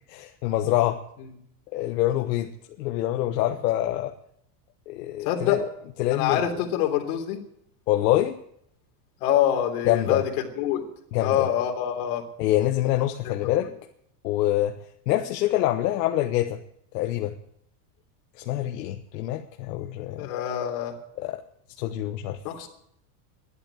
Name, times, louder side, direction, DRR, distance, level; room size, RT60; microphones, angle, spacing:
voice 1, 0.1-1.0 1.7-2.5 2.8-4.1 4.9-5.6 6.0-6.4 7.9-8.4 9.9-10.2 11.1-11.5 12.4-13.7 14.2-14.8 15.1-16.6 16.9-17.4 18.4-20.3 21.2-21.4 21.8-22.4, left 14 dB, 80° left, 4 dB, 1.2 m, -25 dB
voice 2, 5.2-5.6 6.1-7.4 9.2-10.2 10.6-10.8 11.2-12.2 13.2-13.3 20.2-20.9 22.4-22.7, left 10 dB, 60° left, 3 dB, 3.4 m, -25 dB
12.5 x 11.0 x 8.1 m, 0.72 s
supercardioid pair, 155°, 48 cm